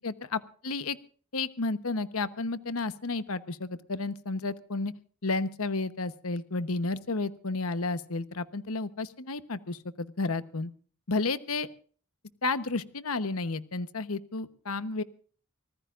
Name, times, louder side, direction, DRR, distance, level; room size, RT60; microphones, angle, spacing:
voice 1, 0.0-1.0 1.3-4.9 5.2-10.7 11.1-11.7 12.4-15.0, left 3 dB, 75° left, 12 dB, 1.1 m, -32 dB
25.0 x 18.5 x 2.6 m, 0.43 s
head